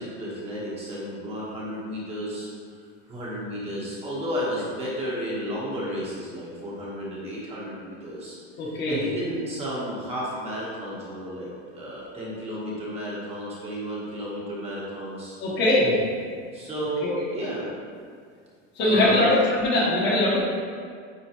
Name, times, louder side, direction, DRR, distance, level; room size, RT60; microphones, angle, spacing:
voice 1, 0.0-2.5 3.1-8.4 8.9-15.4 16.5-17.7 18.8-19.3, equal, 15° right, -6 dB, 1.1 m, -32 dB
voice 2, 8.6-9.0 15.4-15.9 17.0-17.2 18.8-20.4, left 1 dB, 30° left, -4 dB, 1.1 m, -21 dB
9.2 x 4.3 x 2.9 m, 2.1 s
supercardioid pair, 165°, 37 cm